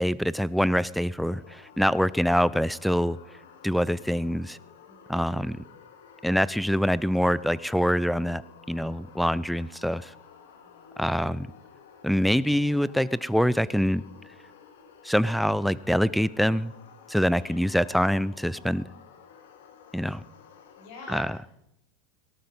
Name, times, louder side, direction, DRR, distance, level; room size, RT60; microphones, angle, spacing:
voice 1, 0.0-3.2 3.6-4.6 5.1-5.6 6.2-8.4 8.7-10.1 11.0-11.5 12.0-14.0 15.0-16.7 17.1-18.9 19.9-20.2 21.1-21.4, equal, ahead, 20 dB, 0.5 m, -25 dB
sound 1, 1.2-20.9, left 7 dB, 80° left, 2.1 m, -52 dB
voice 2, 4.8-5.3 10.5-11.3 17.3-17.9 20.8-21.2, left 4 dB, 65° left, 1 dB, 6.4 m, -47 dB
18.0 x 11.5 x 5.4 m, 0.83 s
hypercardioid pair, 105°, 0 cm